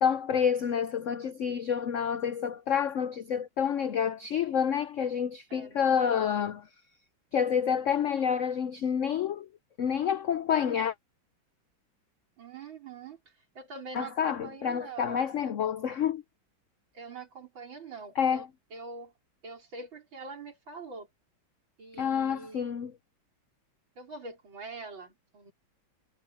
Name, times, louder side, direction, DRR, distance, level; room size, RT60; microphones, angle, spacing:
voice 1, 0.0-6.7 7.3-9.5 9.8-10.9 13.9-16.2 18.2-18.5 22.0-22.9, left 7 dB, 80° left, 0.6 m, -28 dB
voice 2, 5.5-6.6 12.4-13.2 13.5-15.3 16.9-18.5 18.7-19.1 19.4-21.1 21.8-22.7 24.0-25.5, right 4 dB, 85° right, 5.1 m, -44 dB
omnidirectional pair, 2.1 m